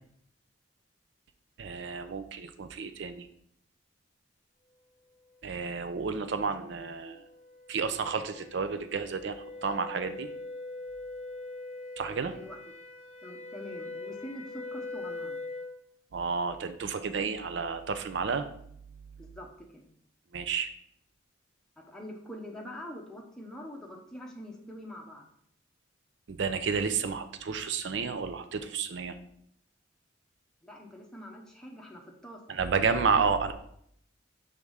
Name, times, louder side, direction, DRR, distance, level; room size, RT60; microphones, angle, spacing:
voice 1, 1.6-3.3 5.4-7.2 7.7-10.3 12.0-12.4 16.1-18.5 20.3-20.7 26.3-29.2 32.5-33.5, right 5 dB, 60° right, 9 dB, 0.4 m, -31 dB
sound 1, 5.9-15.8, left 2 dB, 30° left, 0.5 m, -42 dB
voice 2, 13.2-15.4 19.2-19.8 21.8-25.2 30.6-32.4 32.7-33.3, equal, 5° left, -1 dB, 0.8 m, -44 dB
4.8 x 3.6 x 5.5 m, 0.68 s
head